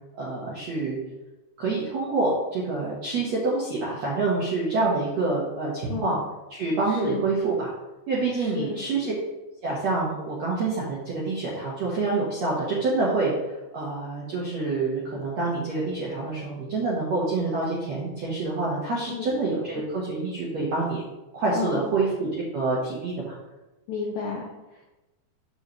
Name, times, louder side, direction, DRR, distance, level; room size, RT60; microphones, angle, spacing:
voice 1, 0.2-1.0 1.6-6.2 6.5-7.7 8.1-9.1 9.6-21.0 21.3-23.3, right 3 dB, 75° right, -6 dB, 1.6 m, -27 dB
voice 2, 5.9-6.2 6.9-7.2 8.3-8.8 19.1-19.3 21.5-21.9 23.9-24.9, left 5 dB, 80° left, -3 dB, 2.0 m, -32 dB
6.9 x 6.8 x 3.1 m, 1.0 s
omnidirectional pair, 5.1 m